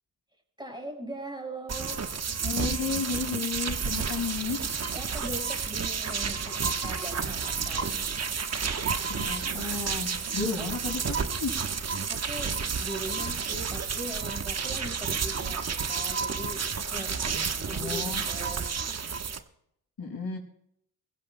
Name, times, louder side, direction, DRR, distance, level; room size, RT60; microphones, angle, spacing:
voice 1, 0.6-2.0 4.9-8.1 10.6-10.7 12.1-18.7, right 1 dB, 10° right, 2 dB, 5.0 m, -40 dB
sound 1, 1.7-19.4, right 6 dB, 35° right, 1.1 m, -31 dB
voice 2, 2.4-4.6 6.7-6.8 9.1-11.5 17.3-18.2 20.0-20.4, left 4 dB, 45° left, 1 dB, 4.9 m, -33 dB
24.5 x 15.5 x 2.2 m, 0.74 s
hypercardioid pair, 45°, 47 cm